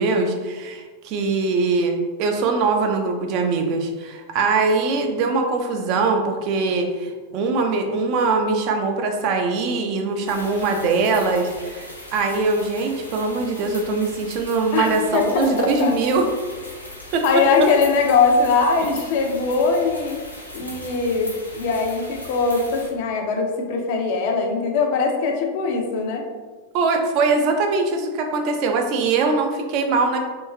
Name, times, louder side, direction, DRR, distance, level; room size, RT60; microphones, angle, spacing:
voice 1, 0.0-16.3 17.1-17.2 26.7-30.2, right 3 dB, 40° right, 4 dB, 0.5 m, -22 dB
sound 1, 10.3-22.9, left 1 dB, 85° left, 0.7 m, -39 dB
voice 2, 15.1-16.0 17.2-20.2 20.5-26.3, left 4 dB, 50° left, 3 dB, 0.6 m, -21 dB
3.2 x 3.0 x 3.2 m, 1.4 s
figure-of-eight pair, 90°, 0 cm